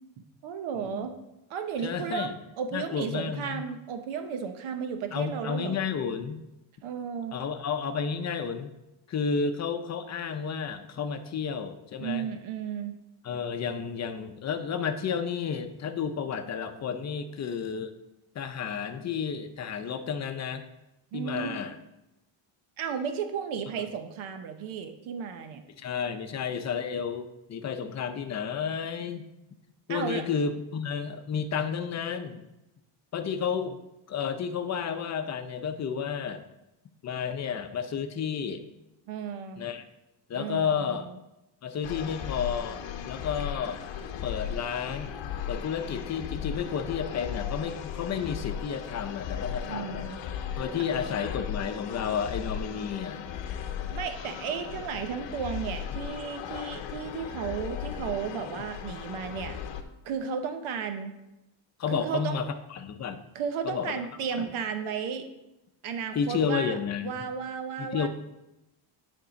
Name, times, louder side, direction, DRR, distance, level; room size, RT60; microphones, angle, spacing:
voice 1, 0.2-1.1 1.5-5.8 6.8-7.3 12.0-13.0 21.1-21.6 22.8-25.6 29.9-30.2 39.1-39.6 40.3-40.9 49.6-50.2 50.7-50.8 53.9-59.6 60.0-61.1 61.9-62.4 63.3-65.3 65.8-66.8 67.0-68.1, right 7 dB, 80° right, 7 dB, 0.9 m, -34 dB
voice 2, 0.8-1.1 1.8-2.3 2.7-3.6 5.1-6.4 7.3-8.7 9.1-12.3 13.2-17.9 18.3-20.7 21.1-21.8 25.8-29.2 29.9-32.4 33.1-33.8 34.1-36.4 37.0-38.7 39.6-39.8 40.3-41.1 41.6-42.8 43.1-43.8 44.2-45.1 45.5-50.1 50.6-53.2 61.8-63.2 63.6-64.0 64.4-64.5 66.1-67.3 67.8-68.1, left 6 dB, 35° left, 8 dB, 0.6 m, -31 dB
sound 1, 41.8-59.8, left 8 dB, 65° left, 0.8 m, -37 dB
9.6 x 3.7 x 5.1 m, 0.93 s
cardioid pair, 150°, 48 cm